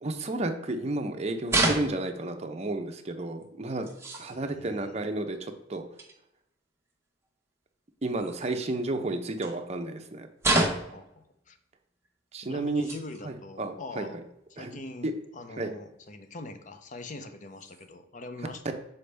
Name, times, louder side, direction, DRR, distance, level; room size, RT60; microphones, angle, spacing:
voice 1, 0.0-3.9 4.2-5.8 8.0-10.3 12.3-12.9 13.2-14.1 14.6-15.1 15.6-15.7, right 2 dB, 35° right, 5 dB, 0.6 m, -32 dB
sound 1, 1.5-2.3 3.4-3.5 3.8-4.4 6.0-6.1 8.2-8.8 9.4-9.5 10.4-11.0 12.0-12.1 12.6-13.2 13.6-13.7 14.8-14.9 16.1-16.2 17.5-17.9, right 2 dB, 15° right, 0.9 m, -29 dB
voice 2, 4.3-5.0 10.9-11.6 12.4-14.2 14.5-18.8, left 2 dB, 45° left, 8 dB, 0.6 m, -43 dB
6.7 x 4.3 x 3.3 m, 0.84 s
head